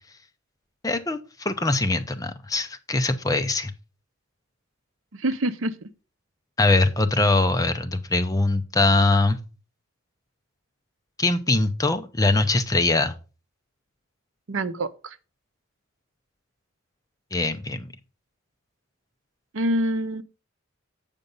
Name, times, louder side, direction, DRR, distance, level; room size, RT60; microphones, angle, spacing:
voice 1, 0.8-3.7 6.6-9.4 11.2-13.2 17.3-17.9, left 2 dB, 15° left, 0.6 m, -22 dB
voice 2, 5.1-5.9 14.5-15.2 19.5-20.2, right 1 dB, 70° right, 0.7 m, -26 dB
8.1 x 5.2 x 5.3 m
head